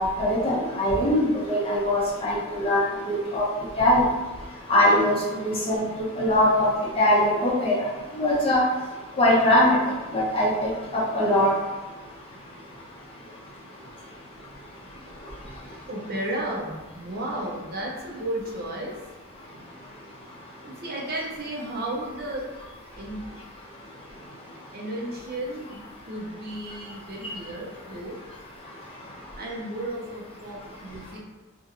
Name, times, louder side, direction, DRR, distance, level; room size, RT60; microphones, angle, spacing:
voice 1, 0.0-3.4 3.8-4.0 4.7-5.8 6.2-6.7 7.0-7.8 8.1-8.6 9.2-9.8 10.1-11.5, left 1 dB, 25° left, -6 dB, 0.9 m, -21 dB
voice 2, 15.9-18.9 20.6-22.5 22.9-23.2 24.7-25.8 26.1-28.2 29.4-31.2, right 1 dB, 45° right, -2 dB, 0.6 m, -33 dB
2.7 x 2.4 x 4.1 m, 1.2 s
head